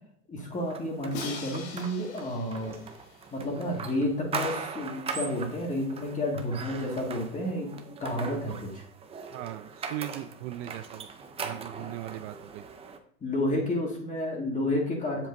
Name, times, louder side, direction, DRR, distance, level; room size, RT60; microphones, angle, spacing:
voice 1, 0.3-2.8 3.3-7.7 8.0-8.8 13.2-15.3, left 1 dB, 15° left, 1 dB, 1.9 m, -30 dB
sound 1, 0.7-13.0, right 5 dB, 15° right, 0.5 m, -40 dB
Crash cymbal, 1.1-4.1, left 4 dB, 70° left, 1.8 m, -42 dB
voice 2, 9.3-11.1 11.4-12.6, right 14 dB, 55° right, 11 dB, 0.5 m, -38 dB
7.7 x 7.3 x 2.6 m, 0.67 s
supercardioid pair, 135°, 43 cm